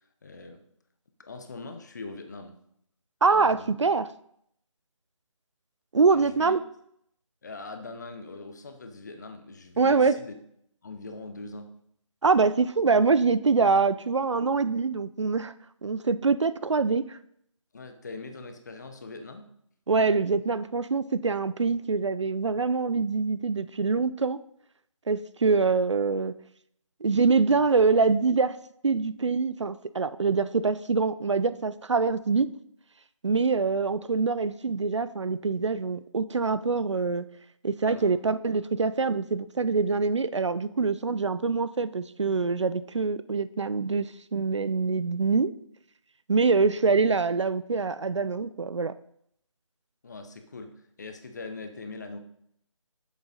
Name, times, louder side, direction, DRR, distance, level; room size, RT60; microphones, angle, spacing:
voice 1, 0.2-0.6 1.2-2.6 3.3-3.7 6.1-6.5 7.4-10.3 10.8-11.8 17.7-19.5 37.8-38.2 50.0-52.2, left 3 dB, 35° left, 7 dB, 0.9 m, -41 dB
voice 2, 3.2-4.1 5.9-6.6 9.8-10.2 12.2-15.5 15.8-17.2 19.9-24.4 25.1-26.3 27.0-28.6 28.8-32.5 33.2-37.3 37.6-45.5 46.3-48.9, right 4 dB, 60° right, 15 dB, 0.5 m, -24 dB
8.7 x 7.1 x 4.1 m, 0.71 s
figure-of-eight pair, 165°, 17 cm